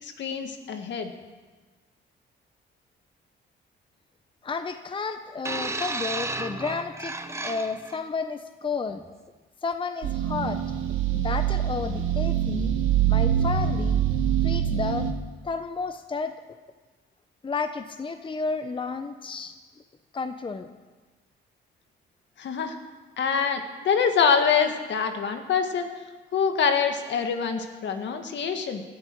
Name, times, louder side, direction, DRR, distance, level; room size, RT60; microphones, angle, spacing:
voice 1, 0.0-1.1 22.4-22.8 23.2-25.9 26.3-28.8, left 6 dB, 65° left, 6 dB, 1.7 m, -25 dB
voice 2, 4.4-9.0 9.6-10.6 11.1-12.7 13.1-14.0 14.4-15.1 15.4-16.3 17.4-19.5 20.1-20.7, left 4 dB, 25° left, 9 dB, 0.7 m, -32 dB
sound 1, 5.4-8.0 8.9-9.1, right 2 dB, 15° right, 0.9 m, -33 dB
sound 2, 10.0-15.1, right 9 dB, 85° right, 1.2 m, -24 dB
18.5 x 11.5 x 4.6 m, 1.3 s
cardioid pair, 90°, 20 cm